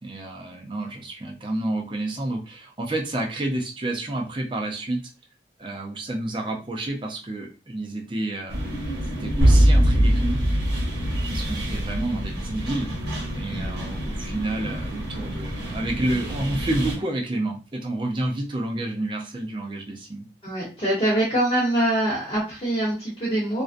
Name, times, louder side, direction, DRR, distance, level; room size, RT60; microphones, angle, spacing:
voice 1, 0.0-5.0 5.6-8.7 9.0-10.4 11.3-12.9 13.3-20.3, right 2 dB, 25° right, 1 dB, 0.4 m, -29 dB
sound 1, 8.5-17.0, equal, 85° right, 0.9 m, -31 dB
sound 2, 9.4-12.3, equal, 80° left, 1.0 m, -19 dB
voice 2, 20.4-23.6, right 1 dB, 30° left, -8 dB, 0.9 m, -24 dB
2.5 x 2.1 x 2.5 m, 0.34 s
head